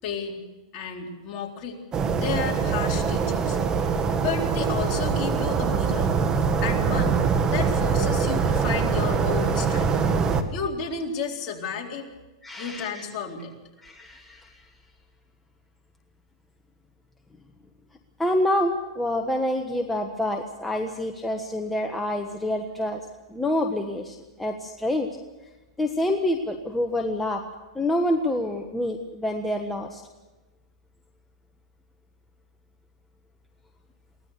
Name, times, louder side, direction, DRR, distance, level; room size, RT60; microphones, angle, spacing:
voice 1, 0.0-0.4 0.7-1.8 2.1-3.6 4.2-6.1 6.6-7.2 7.5-9.9 10.5-12.1 12.6-13.5, left 5 dB, 35° left, -1 dB, 4.1 m, -32 dB
sound 1, 1.9-10.4, right 5 dB, 25° right, 1.6 m, -23 dB
voice 2, 12.4-13.0 13.8-14.7 18.2-23.0 23.3-25.1 25.8-27.4 27.7-30.0, left 1 dB, 5° left, 3 dB, 1.3 m, -27 dB
23.0 x 17.5 x 6.7 m, 1.1 s
hypercardioid pair, 135°, 3 cm